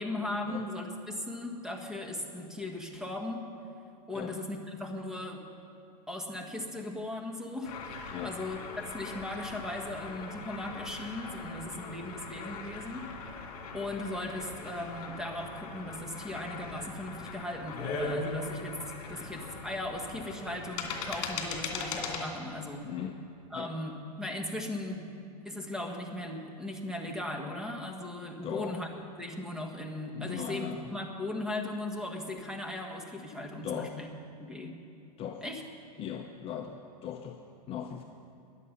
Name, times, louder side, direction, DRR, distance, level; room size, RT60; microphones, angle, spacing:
voice 1, 0.0-3.4 4.1-5.4 6.1-8.6 8.9-13.4 13.7-18.8 19.1-22.9 23.5-25.1 25.4-28.9 29.2-34.1 34.4-34.8 35.4-35.6, left 1 dB, 5° right, 1 dB, 1.4 m, -38 dB
sound 1, 7.6-22.3, left 4 dB, 55° left, 2.8 m, -40 dB
voice 2, 22.8-23.3 23.5-23.8 28.4-28.8 30.1-30.9 33.6-34.0 35.2-35.5 36.0-38.0, left 8 dB, 25° left, 4 dB, 0.6 m, -39 dB
21.5 x 7.6 x 5.6 m, 2.6 s
hypercardioid pair, 130°, 21 cm